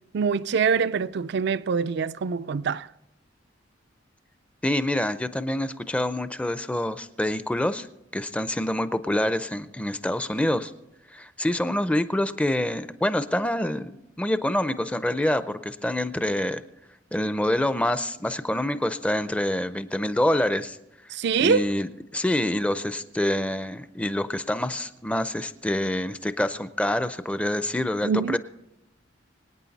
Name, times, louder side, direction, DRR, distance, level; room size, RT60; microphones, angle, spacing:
voice 1, 0.1-2.9 21.1-21.7 28.0-28.4, right 5 dB, 60° right, 0.4 m, -24 dB
voice 2, 4.6-7.9 8.1-10.7 11.1-13.9 14.2-16.6 17.1-20.8 21.4-28.4, left 1 dB, 5° left, 0.5 m, -26 dB
25.0 x 9.1 x 4.1 m
head